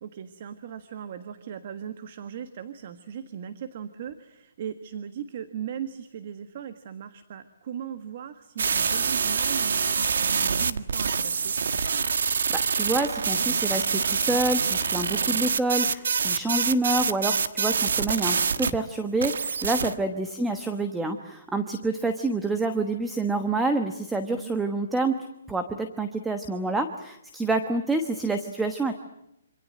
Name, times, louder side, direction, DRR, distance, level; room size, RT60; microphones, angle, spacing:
voice 1, 0.0-11.6 15.2-15.5 19.9-20.1 24.3-24.5, right 8 dB, 40° right, 10 dB, 1.5 m, -38 dB
sound 1, 8.6-18.7 19.2-20.0, right 5 dB, 70° right, 1.7 m, -25 dB
voice 2, 12.5-25.1 25.5-28.9, right 2 dB, 5° right, 7 dB, 1.2 m, -27 dB
27.0 x 26.5 x 7.7 m, 0.81 s
hypercardioid pair, 170°, 0 cm